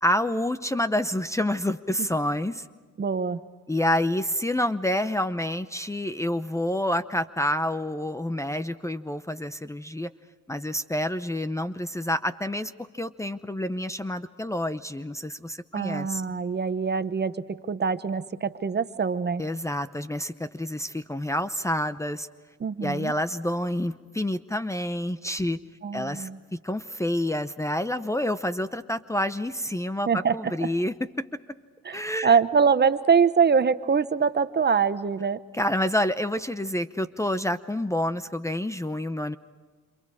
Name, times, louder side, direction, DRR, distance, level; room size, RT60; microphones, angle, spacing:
voice 1, 0.0-2.7 3.7-10.1 10.5-16.2 19.4-22.3 22.8-25.6 25.9-31.3 31.9-32.4 35.5-39.4, left 1 dB, 10° left, 12 dB, 0.8 m, -28 dB
voice 2, 3.0-3.4 15.7-19.4 22.6-23.1 25.8-26.4 30.1-30.7 31.8-35.4, right 6 dB, 35° right, 12 dB, 1.1 m, -24 dB
28.0 x 27.5 x 4.9 m, 1.5 s
cardioid pair, 90°, 30 cm